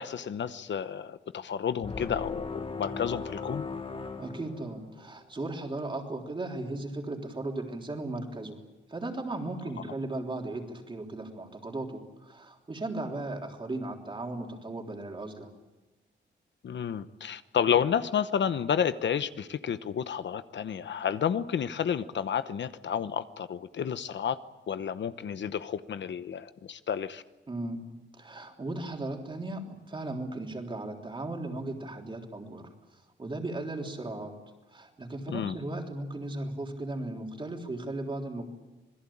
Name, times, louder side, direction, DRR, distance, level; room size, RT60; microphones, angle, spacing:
voice 1, 0.0-3.7 16.6-24.4 24.7-27.2 35.3-35.5, left 8 dB, 70° left, 12 dB, 1.0 m, -31 dB
sound 1, 1.8-5.2, left 4 dB, 30° left, 1.3 m, -38 dB
voice 2, 4.2-8.6 8.9-15.5 27.5-27.8 28.1-32.7 33.2-34.3 34.7-38.5, right 2 dB, 25° right, 2 dB, 3.5 m, -36 dB
27.0 x 21.5 x 8.7 m, 1.1 s
wide cardioid pair, 160°, 19 cm